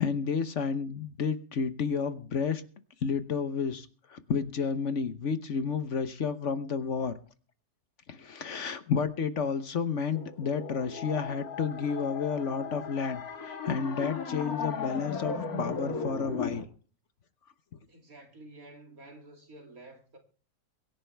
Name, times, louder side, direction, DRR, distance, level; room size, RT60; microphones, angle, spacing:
voice 1, 0.0-2.6 3.0-7.1 8.1-16.6, left 6 dB, 55° left, 1.2 m, -31 dB
sound 1, 10.1-16.6, left 5 dB, 70° left, 2.0 m, -36 dB
voice 2, 17.9-20.2, right 2 dB, 65° right, 3.1 m, -50 dB
23.0 x 10.0 x 3.4 m
omnidirectional pair, 1.6 m